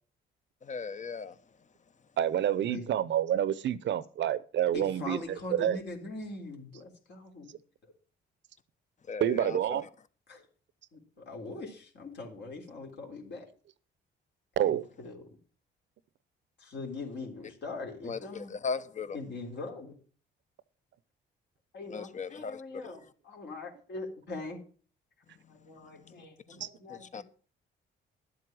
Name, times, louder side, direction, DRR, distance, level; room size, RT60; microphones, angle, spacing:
voice 1, 0.6-1.3 9.1-9.8 18.0-19.2 21.9-22.6 26.1-26.2 26.9-27.2, left 5 dB, 40° left, 1.0 m, -37 dB
voice 2, 2.2-5.8 9.2-9.9 14.6-14.8 26.6-26.7, right 11 dB, 65° right, 0.8 m, -28 dB
voice 3, 4.7-7.5 7.8-7.9 10.3-10.5 10.9-13.5 14.6-15.4 16.6-18.5 19.1-19.9 21.7-24.6 25.5-27.2, left 3 dB, 60° left, 3.7 m, -42 dB
11.5 x 7.8 x 6.2 m
cardioid pair, 90°, 20 cm